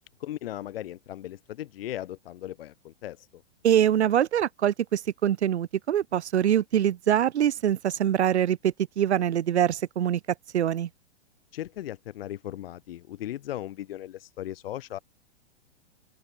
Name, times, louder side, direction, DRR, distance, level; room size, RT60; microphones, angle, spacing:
voice 1, 0.2-3.4 11.5-15.0, left 13 dB, 60° left, 0.9 m, -37 dB
voice 2, 3.6-10.2 10.5-10.9, right 10 dB, 80° right, 0.5 m, -24 dB
open air
figure-of-eight pair, 110°, 33 cm